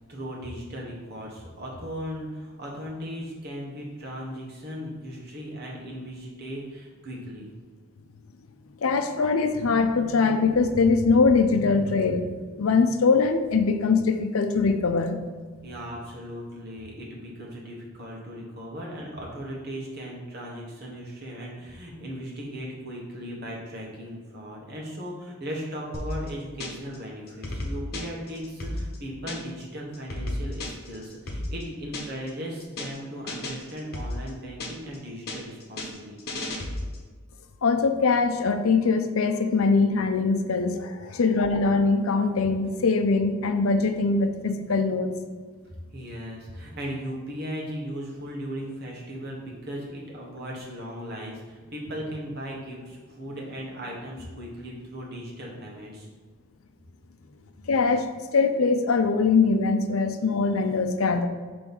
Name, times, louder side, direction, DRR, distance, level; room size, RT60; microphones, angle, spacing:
voice 1, 0.1-7.5 15.6-36.4 40.9-41.2 45.6-56.1, equal, 50° right, -3 dB, 1.5 m, -37 dB
voice 2, 8.8-12.3 12.6-15.2 37.6-45.1 57.6-61.3, left 4 dB, 85° left, 7 dB, 0.6 m, -22 dB
sound 1, 25.9-27.0 27.3-29.6 29.9-32.3 32.6-33.0 33.3-35.0 35.3-37.1, left 1 dB, 50° left, 1.2 m, -33 dB
6.2 x 3.4 x 5.4 m, 1.5 s
head